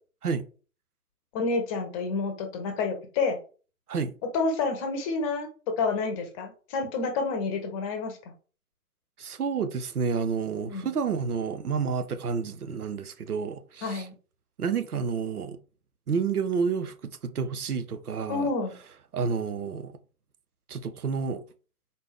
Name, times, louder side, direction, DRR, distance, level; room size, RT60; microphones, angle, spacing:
voice 1, 1.3-3.4 4.3-8.2 10.7-10.9 13.8-14.1 18.3-18.7, left 4 dB, 25° left, 0.8 m, -29 dB
voice 2, 9.2-14.1 14.6-15.6 16.1-18.5 19.1-20.0 20.7-21.4, right 5 dB, 85° right, 0.7 m, -30 dB
4.1 x 3.4 x 3.4 m
figure-of-eight pair, 125°, 44 cm